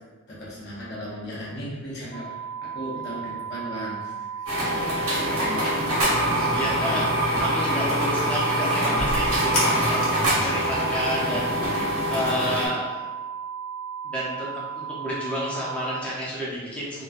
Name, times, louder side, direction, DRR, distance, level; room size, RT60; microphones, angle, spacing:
voice 1, 0.3-4.5, equal, 50° left, -7 dB, 0.8 m, -36 dB
sound 1, 2.1-16.0, right 7 dB, 45° right, 0.4 m, -35 dB
sound 2, 4.5-12.7, equal, 75° right, 1.1 m, -26 dB
sound 3, 5.9-12.5, right 1 dB, 80° left, 0.9 m, -27 dB
voice 2, 6.3-11.5 12.1-13.0 14.0-14.5 14.8-17.0, equal, 5° left, -8 dB, 0.5 m, -30 dB
3.0 x 2.2 x 2.4 m, 1.2 s
head